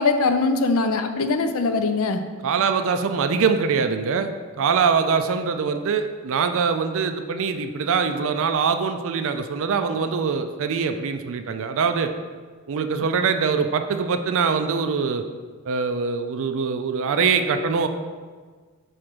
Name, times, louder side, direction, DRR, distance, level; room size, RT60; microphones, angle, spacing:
voice 1, 0.0-2.2, left 3 dB, 65° left, 8 dB, 0.5 m, -21 dB
voice 2, 2.4-4.3 4.6-12.1 12.7-15.2 15.7-17.9, right 5 dB, 65° right, 8 dB, 0.4 m, -23 dB
5.0 x 4.3 x 6.0 m, 1.5 s
head